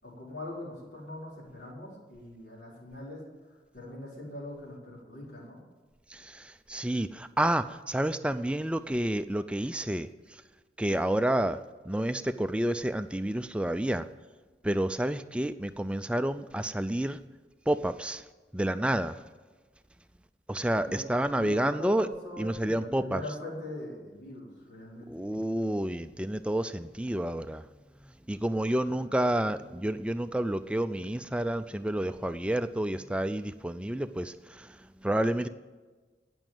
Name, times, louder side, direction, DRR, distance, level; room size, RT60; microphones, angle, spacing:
voice 1, 0.0-5.6 20.9-21.0 21.3-25.3 28.8-29.1, left 1 dB, 70° left, 4.3 m, -42 dB
voice 2, 6.1-10.4 10.8-11.6 11.9-14.1 14.6-17.2 17.7-18.2 18.5-19.2 20.5-22.1 22.4-23.2 25.1-27.6 28.0-35.5, right 1 dB, 5° right, 0.4 m, -29 dB
17.0 x 6.2 x 9.0 m
head